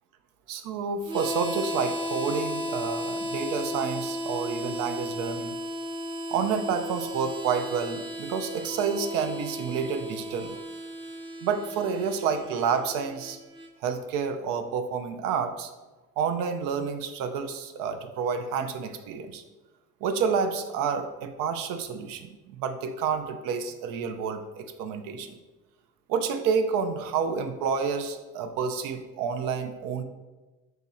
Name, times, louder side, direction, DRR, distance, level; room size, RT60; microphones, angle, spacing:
voice 1, 0.5-5.5 6.3-10.6 11.4-13.4 13.8-15.7 16.2-19.4 20.0-25.3 26.1-30.0, right 6 dB, 80° right, 8 dB, 0.5 m, -29 dB
Harmonica, 1.0-13.7, equal, 15° right, 0.5 m, -35 dB
3.7 x 2.7 x 4.1 m, 1.2 s
supercardioid pair, 80°, 33 cm